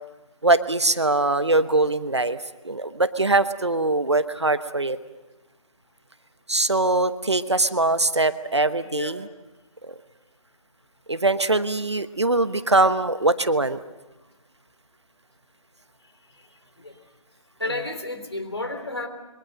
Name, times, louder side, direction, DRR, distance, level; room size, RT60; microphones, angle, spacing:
voice 1, 0.4-2.4 2.6-5.0 6.5-9.2 9.8-9.9 11.1-13.8, right 2 dB, 50° right, 12 dB, 1.1 m, -22 dB
voice 2, 8.8-9.2 16.3-17.0 17.6-19.1, left 2 dB, 45° left, 8 dB, 3.4 m, -33 dB
27.0 x 23.5 x 6.5 m, 1.1 s
figure-of-eight pair, 165°, 18 cm